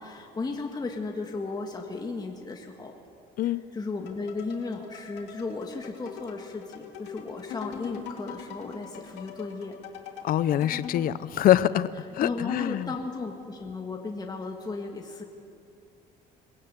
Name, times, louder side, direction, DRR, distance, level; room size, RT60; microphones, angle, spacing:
voice 1, 0.0-2.9 3.4-9.8 12.2-15.2, left 3 dB, 25° left, 2 dB, 1.8 m, -35 dB
sound 1, 4.1-11.2, left 6 dB, 85° left, 2.6 m, -43 dB
voice 2, 10.2-12.9, left 12 dB, 60° left, 16 dB, 0.6 m, -24 dB
21.5 x 16.5 x 8.3 m, 2.5 s
cardioid pair, 110°, 17 cm